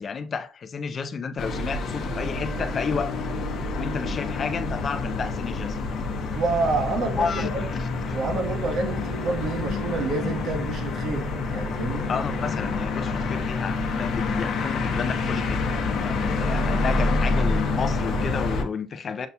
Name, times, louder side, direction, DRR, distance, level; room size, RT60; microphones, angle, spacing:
voice 1, 0.0-3.1 3.8-5.8 7.2-7.7 12.1-19.3, left 5 dB, 35° left, 0.3 m, -31 dB
sound 1, 1.4-18.6, left 3 dB, 65° left, 0.7 m, -27 dB
voice 2, 6.3-7.7 8.1-12.1 16.6-16.7, right 3 dB, 60° right, 1.1 m, -28 dB
6.7 x 2.3 x 2.7 m
cardioid pair, 145°, 0 cm